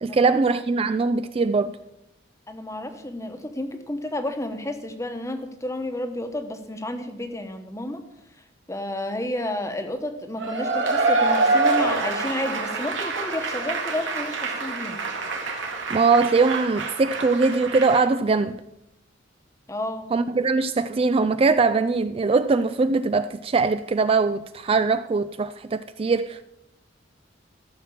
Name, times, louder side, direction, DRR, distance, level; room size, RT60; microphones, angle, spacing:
voice 1, 0.0-1.8 15.9-18.6 20.1-26.4, right 4 dB, 30° right, 0.3 m, -21 dB
voice 2, 2.5-8.0 8.7-15.0 19.7-20.1, left 1 dB, 15° left, 1.1 m, -31 dB
Cheering / Applause / Crowd, 10.4-18.0, right 3 dB, 80° right, 2.1 m, -26 dB
14.0 x 5.9 x 7.2 m
head